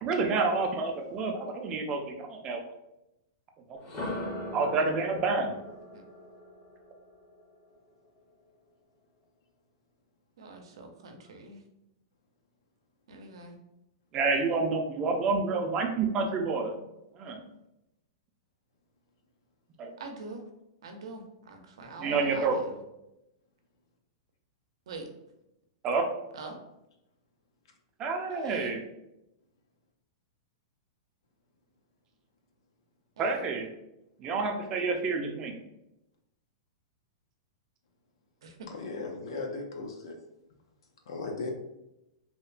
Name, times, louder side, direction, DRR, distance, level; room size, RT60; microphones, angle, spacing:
voice 1, 0.0-2.6 4.2-5.5 14.1-16.8 17.2-17.4 19.8-19.9 22.0-22.6 25.8-26.1 28.0-28.8 33.2-33.7 34.2-35.5, right 4 dB, 25° right, 3 dB, 0.4 m, -29 dB
sound 1, 3.8-7.7, left 1 dB, 35° left, 0.6 m, -40 dB
voice 2, 10.4-11.6 13.1-13.6 20.0-20.4 20.8-22.8 24.9-25.1 26.3-26.6 28.3-28.7 33.2-33.5 38.4-38.7, right 3 dB, 80° right, 4 dB, 0.6 m, -44 dB
voice 3, 38.7-40.2 41.1-41.5, left 3 dB, 80° left, 3 dB, 0.6 m, -37 dB
2.9 x 2.1 x 2.4 m, 0.88 s
supercardioid pair, 160°, 3 cm